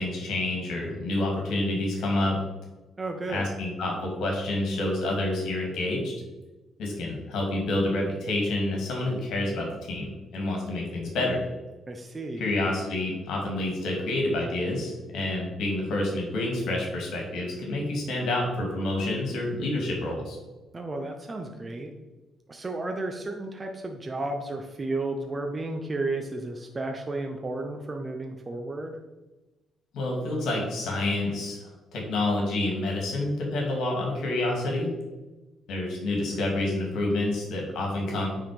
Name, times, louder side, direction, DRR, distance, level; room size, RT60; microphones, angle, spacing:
voice 1, 0.0-2.4 3.3-6.1 6.8-11.5 12.4-20.4 29.9-34.9 35.7-38.3, left 2 dB, 80° left, 0 dB, 2.3 m, -28 dB
voice 2, 3.0-3.5 11.9-12.5 20.7-21.9 22.5-29.0, right 2 dB, 25° right, 3 dB, 0.8 m, -33 dB
9.2 x 3.9 x 5.0 m, 1.1 s
cardioid pair, 90°, 0 cm